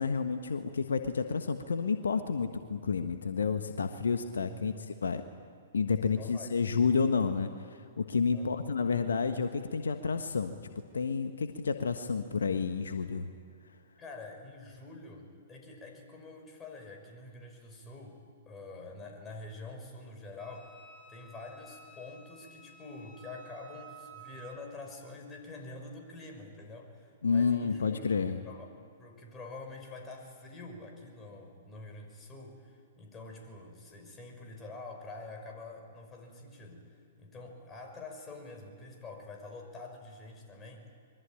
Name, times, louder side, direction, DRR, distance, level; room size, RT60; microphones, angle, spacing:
voice 1, 0.0-5.2 5.7-10.6 10.9-13.3 27.2-28.4, left 5 dB, 75° left, 8 dB, 1.3 m, -30 dB
voice 2, 4.5-4.9 6.2-6.5 8.3-8.7 14.0-18.2 18.5-20.7 21.1-28.7 29.0-36.9 37.2-40.8, left 3 dB, 20° left, 3 dB, 5.9 m, -46 dB
Wind instrument woodwind instrument, 20.4-24.6, right 4 dB, ahead, 7.9 m, -53 dB
26.0 x 23.0 x 9.0 m, 2.4 s
figure-of-eight pair, 115°, 0 cm